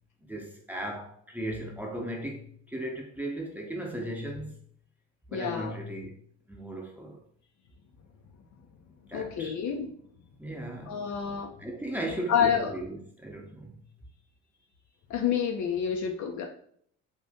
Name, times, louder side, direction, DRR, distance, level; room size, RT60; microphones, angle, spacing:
voice 1, 0.2-4.6 5.3-6.1 6.5-7.2 9.1-9.6 10.4-11.1 11.6-13.8, right 1 dB, 5° right, 0.9 m, -37 dB
voice 2, 5.3-5.8 9.1-9.9 10.9-11.5 12.3-12.7 15.1-16.4, left 8 dB, 50° left, 0.6 m, -28 dB
2.8 x 2.4 x 3.5 m
hypercardioid pair, 60°, 37 cm